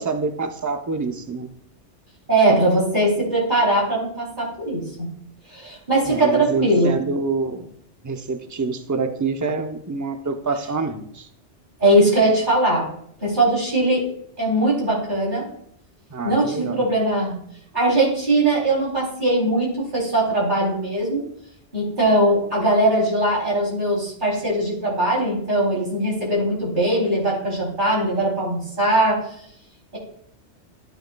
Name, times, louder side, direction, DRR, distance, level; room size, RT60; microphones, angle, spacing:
voice 1, 0.0-1.5 6.0-7.7 8.0-11.3 16.1-16.8, right 4 dB, 20° right, 5 dB, 0.6 m, -26 dB
voice 2, 2.3-5.1 5.5-6.9 11.8-12.9 13.2-14.1 14.4-15.5 16.2-17.4 17.7-21.2 21.7-29.2, right 1 dB, 45° right, -5 dB, 3.5 m, -20 dB
13.5 x 7.9 x 2.3 m, 0.68 s
omnidirectional pair, 1.2 m